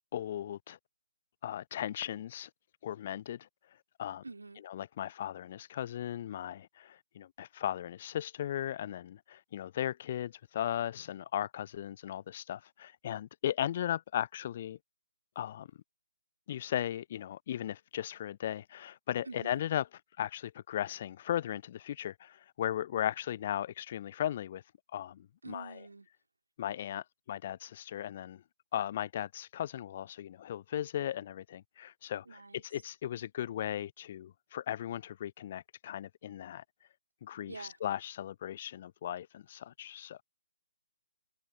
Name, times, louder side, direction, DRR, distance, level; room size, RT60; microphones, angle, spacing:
voice 1, 0.1-0.8 1.4-2.5 2.8-3.5 4.0-4.2 4.6-14.8 15.4-15.7 16.5-19.9 20.2-25.9 26.6-28.4 28.7-36.6 37.2-40.2, left 11 dB, 35° left, 0.3 m, -37 dB
voice 2, 4.2-4.6 19.2-19.6 25.4-26.1 32.3-32.6 37.5-37.7, right 3 dB, 65° right, 2.3 m, -46 dB
figure-of-eight pair, 140°, 0 cm